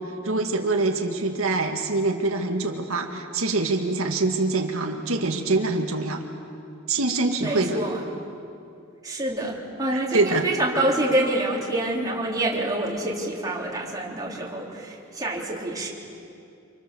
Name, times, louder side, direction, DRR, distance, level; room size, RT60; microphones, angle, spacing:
voice 1, 0.0-6.2 6.9-7.8 9.9-10.5, right 3 dB, 85° right, 2 dB, 2.1 m, -25 dB
voice 2, 7.4-8.0 9.0-15.9, right 1 dB, 20° right, -4 dB, 4.2 m, -27 dB
29.5 x 27.0 x 7.3 m, 2.6 s
head